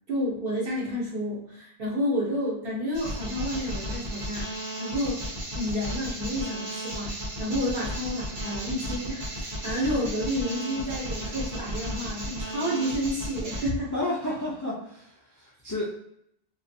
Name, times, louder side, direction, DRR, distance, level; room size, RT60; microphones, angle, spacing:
voice 1, 0.1-4.5 4.8-5.2 5.5-13.9, equal, 65° right, -5 dB, 1.2 m, -30 dB
sound 1, 2.9-13.7, equal, 85° right, 1.2 m, -34 dB
voice 2, 13.9-15.8, left 1 dB, 25° left, -6 dB, 0.4 m, -31 dB
2.6 x 2.5 x 2.6 m, 0.73 s
omnidirectional pair, 1.0 m